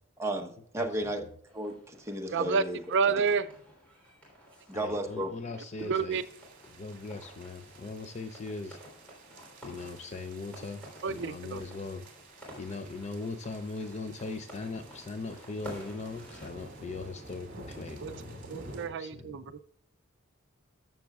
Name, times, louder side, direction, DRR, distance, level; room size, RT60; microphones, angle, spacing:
voice 1, 0.2-1.2 1.5-2.8 4.7-5.3, right 1 dB, 15° right, 3 dB, 0.9 m, -33 dB
voice 2, 0.8-1.3 4.7-6.2 6.7-8.8 9.6-12.0 12.6-19.3, left 3 dB, 35° left, 8 dB, 0.5 m, -40 dB
sound 1, 1.5-16.5, equal, 5° left, 3.4 m, -52 dB
voice 3, 2.3-2.6 2.9-3.5 5.0-5.1 5.5-6.2 11.0-11.6 18.0-18.1 18.5-19.5, right 5 dB, 60° right, 12 dB, 0.4 m, -30 dB
sound 2, 6.1-18.9, right 2 dB, 45° right, 2.4 m, -51 dB
13.0 x 7.2 x 2.3 m, 0.63 s
head